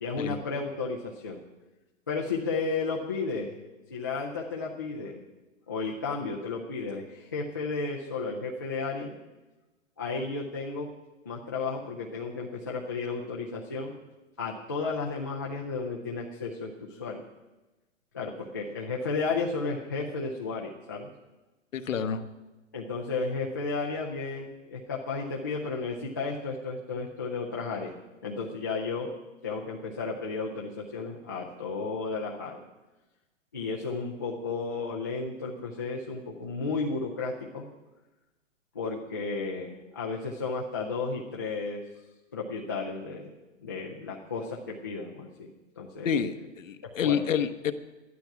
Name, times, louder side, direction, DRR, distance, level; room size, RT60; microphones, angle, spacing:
voice 1, 0.0-1.4 2.1-3.6 3.9-5.2 5.7-9.1 10.0-10.9 11.3-13.9 14.4-17.2 18.1-21.1 22.7-28.0 28.2-29.1 29.4-32.7 33.5-37.7 38.7-41.8 42.3-43.3 43.6-46.1 46.8-47.2, left 4 dB, 15° left, -3 dB, 0.4 m, -33 dB
voice 2, 21.7-22.2 46.0-47.7, left 7 dB, 75° left, 9 dB, 1.1 m, -28 dB
12.5 x 11.5 x 5.8 m, 1.1 s
hypercardioid pair, 165°, 39 cm